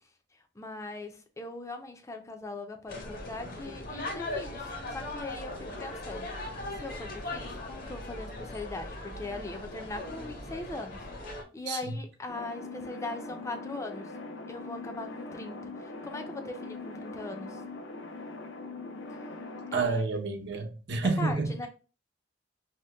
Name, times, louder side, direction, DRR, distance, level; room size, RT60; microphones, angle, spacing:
voice 1, 0.6-14.2 14.5-17.6 19.7-20.0 21.2-21.7, left 2 dB, 15° left, 0.4 m, -40 dB
sound 1, 2.9-11.4, left 2 dB, 55° left, 0.8 m, -39 dB
voice 2, 11.7-12.0 19.7-21.5, right 3 dB, 65° right, 0.7 m, -29 dB
sound 2, 12.3-19.8, left 3 dB, 85° left, 0.5 m, -42 dB
2.8 x 2.1 x 3.3 m
head